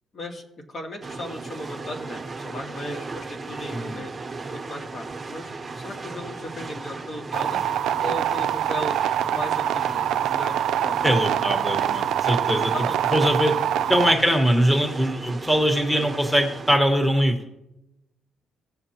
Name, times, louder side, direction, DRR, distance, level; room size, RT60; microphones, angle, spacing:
voice 1, 0.1-4.1 4.5-5.5 5.8-7.6 8.0-9.0 9.3-11.0 12.5-13.0 13.8-13.9, left 1 dB, 50° left, 1 dB, 2.0 m, -36 dB
sound 1, 1.0-16.8, right 3 dB, 25° right, 1.1 m, -37 dB
voice 2, 3.7-4.0 11.0-12.7 13.1-13.6 13.9-17.4, equal, 5° left, 4 dB, 1.3 m, -21 dB
sound 2, 7.3-14.1, right 11 dB, 80° right, 0.3 m, -24 dB
16.5 x 6.6 x 2.9 m, 0.88 s
cardioid pair, 90°, 0 cm